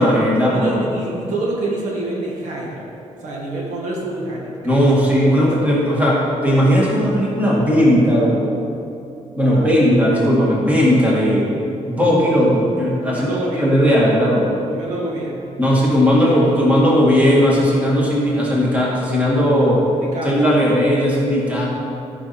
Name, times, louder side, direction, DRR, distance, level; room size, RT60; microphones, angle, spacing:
voice 1, 0.0-0.7 4.6-8.6 9.3-11.5 11.9-14.6 15.6-19.8 20.2-21.6, equal, 10° right, -5 dB, 1.9 m, -16 dB
voice 2, 0.5-2.8 3.2-4.8 5.4-6.0 9.5-9.7 13.0-13.8 14.7-15.5 16.3-16.4 19.9-20.6, right 2 dB, 90° right, -3 dB, 2.0 m, -27 dB
13.5 x 5.7 x 4.3 m, 2.6 s
cardioid pair, 165°, 12 cm